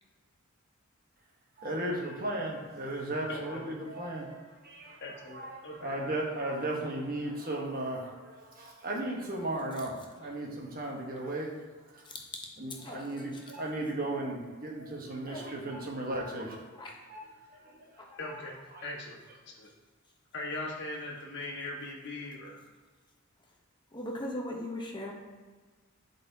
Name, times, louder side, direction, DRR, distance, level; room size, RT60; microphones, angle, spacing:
voice 1, 1.6-11.5 11.9-12.1 12.6-16.7 17.1-17.2 17.5-18.4 18.7-18.8, right 1 dB, 45° right, -1 dB, 1.2 m, -36 dB
voice 2, 3.3-3.6 5.0-5.9 18.2-19.2 19.5-19.7 20.3-22.6, left 2 dB, 55° left, -2 dB, 1.3 m, -40 dB
voice 3, 23.9-25.1, left 1 dB, 20° left, -1 dB, 0.9 m, -39 dB
11.5 x 4.2 x 2.8 m, 1.3 s
head